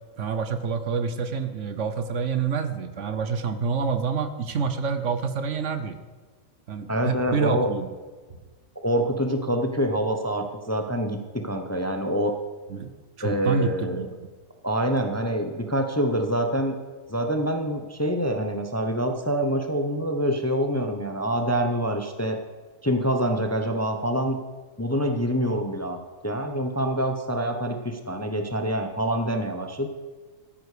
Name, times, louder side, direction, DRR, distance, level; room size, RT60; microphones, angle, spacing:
voice 1, 0.2-6.0 6.7-7.9 12.7-12.9 13.2-14.1, right 5 dB, 65° right, 9 dB, 1.2 m, -27 dB
voice 2, 6.9-7.7 8.8-12.3 13.2-14.1 14.6-16.8 17.1-22.4 22.8-24.4 24.8-29.9, equal, 15° left, 5 dB, 0.7 m, -26 dB
14.0 x 9.7 x 5.0 m, 1.4 s
omnidirectional pair, 1.4 m